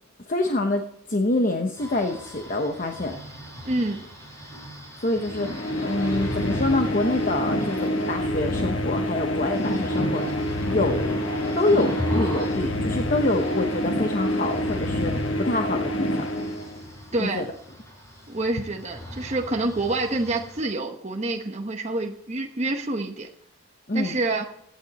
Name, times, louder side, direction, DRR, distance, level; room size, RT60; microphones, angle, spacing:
voice 1, 0.3-0.8 1.1-3.2 5.0-10.4 10.7-11.2 11.6-16.1 17.2-17.4 23.9-24.2, left 2 dB, 35° left, 4 dB, 0.9 m, -26 dB
sound 1, 1.8-20.6, equal, 15° left, 4.7 m, -39 dB
voice 2, 3.6-4.0 17.1-17.4 18.3-23.3 23.9-24.5, right 2 dB, 30° right, 3 dB, 1.0 m, -27 dB
sound 2, 5.2-17.1, left 1 dB, 55° left, 1.4 m, -27 dB
16.5 x 9.5 x 4.2 m, 0.76 s
head